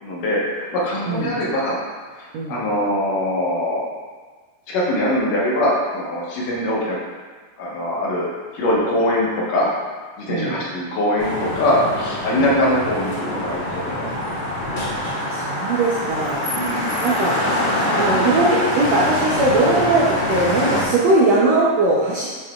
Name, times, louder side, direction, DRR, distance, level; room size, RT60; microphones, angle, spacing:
voice 1, 0.0-1.8 2.2-3.8 4.7-7.0 7.6-8.3 8.5-9.7 10.2-14.1 16.5-17.0, left 1 dB, 65° left, -5 dB, 2.8 m, -22 dB
sound 1, 11.2-20.8, left 1 dB, 45° left, 1.7 m, -24 dB
voice 2, 14.9-16.4 17.0-17.6 18.0-22.3, right 2 dB, 75° right, -6 dB, 1.6 m, -20 dB
8.3 x 7.6 x 2.4 m, 1.5 s
omnidirectional pair, 4.1 m